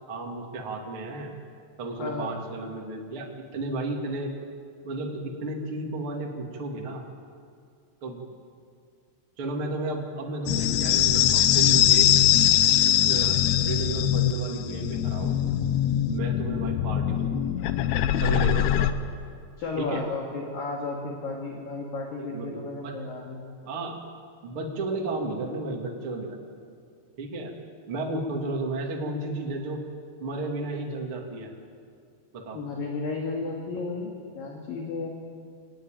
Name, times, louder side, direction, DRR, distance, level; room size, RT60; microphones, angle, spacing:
voice 1, 0.1-1.3 1.8-4.3 4.8-7.0 8.0-8.2 9.4-12.1 12.8-15.4 16.1-17.4 18.2-18.9 19.8-20.1 22.2-22.9 23.6-24.0 24.4-26.4 27.2-27.5 27.9-29.8 30.2-31.5 32.3-32.6, right 2 dB, 35° right, 0 dB, 2.3 m, -33 dB
voice 2, 2.0-2.3 19.6-23.4 32.5-35.1, left 3 dB, 50° left, 0 dB, 3.3 m, -33 dB
sound 1, 10.5-18.9, left 11 dB, 90° left, 2.3 m, -22 dB
24.5 x 19.5 x 9.1 m, 2.2 s
omnidirectional pair, 5.9 m